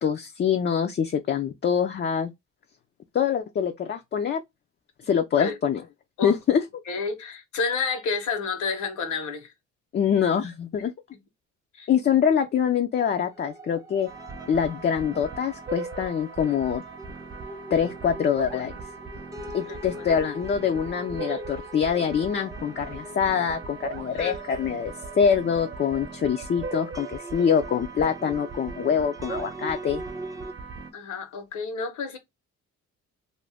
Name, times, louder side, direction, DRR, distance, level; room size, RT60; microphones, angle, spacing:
voice 1, 0.0-2.3 3.1-4.4 5.0-5.8 6.2-6.6 9.9-10.9 11.9-14.1 14.5-16.8 17.7-18.7 19.5-30.0, left 7 dB, 35° left, 0.4 m, -24 dB
voice 2, 6.9-9.5 11.7-11.9 19.6-19.8 21.1-21.4 24.1-24.4 30.9-32.2, left 4 dB, 80° left, 1.1 m, -30 dB
sound 1, 13.0-30.5, right 1 dB, 10° right, 0.6 m, -42 dB
sound 2, 14.1-30.9, right 4 dB, 40° right, 0.9 m, -39 dB
2.6 x 2.1 x 3.3 m
cardioid pair, 90°, 30 cm